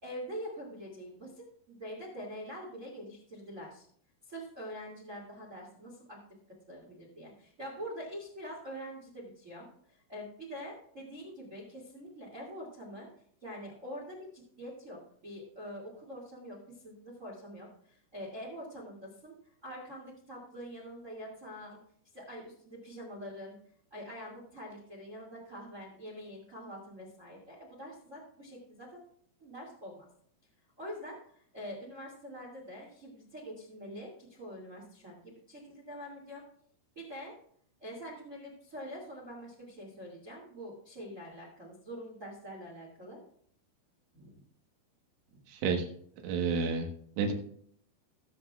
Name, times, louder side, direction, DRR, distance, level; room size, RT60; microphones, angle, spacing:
voice 1, 0.0-3.8 4.2-6.2 6.7-13.1 13.4-19.3 19.6-21.8 22.1-23.5 23.9-29.0 29.4-30.0 30.8-36.4 36.9-37.3 37.8-43.2 44.1-44.4 45.3-45.4, equal, 30° right, -3 dB, 1.4 m, -45 dB
voice 2, 45.5-45.9 46.2-46.9 47.2-47.3, right 5 dB, 80° right, 3 dB, 4.0 m, -29 dB
19.5 x 7.6 x 2.4 m, 0.62 s
omnidirectional pair, 5.6 m